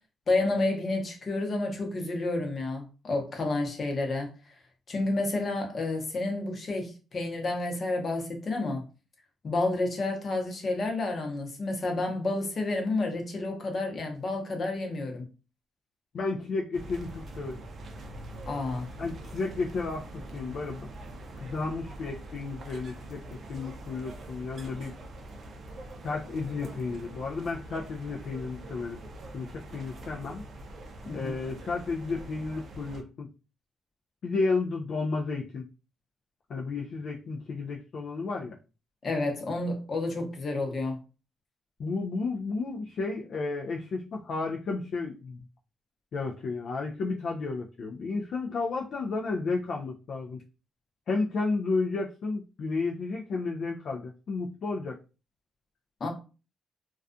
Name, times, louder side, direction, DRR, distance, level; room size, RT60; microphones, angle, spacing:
voice 1, 0.3-4.3 4.9-8.8 9.4-15.2 18.5-18.9 31.0-31.3 39.0-41.0 56.0-56.1, left 2 dB, 45° left, 0.8 m, -30 dB
voice 2, 16.1-17.6 19.0-20.9 21.4-25.0 26.0-29.0 29.3-30.4 31.1-33.3 34.2-35.7 36.5-38.6 41.8-45.4 46.1-50.4 51.1-55.0, left 3 dB, 60° left, 0.3 m, -32 dB
sound 1, 16.7-33.0, right 2 dB, 50° right, 0.4 m, -44 dB
2.3 x 2.3 x 2.5 m
cardioid pair, 90°, 0 cm